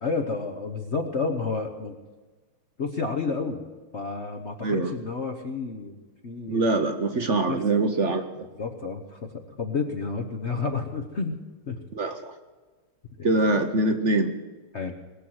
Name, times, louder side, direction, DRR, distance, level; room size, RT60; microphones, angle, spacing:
voice 1, 0.0-2.0 2.8-3.6 3.9-6.0 6.2-6.7 7.5-7.6 8.5-11.4 11.7-11.8 13.2-13.3 14.7-14.9, left 4 dB, 50° left, 3 dB, 0.9 m, -30 dB
voice 2, 6.5-8.3 11.9-12.3 13.2-14.3, right 2 dB, 55° right, 7 dB, 0.8 m, -23 dB
20.5 x 7.7 x 7.9 m, 1.3 s
omnidirectional pair, 2.4 m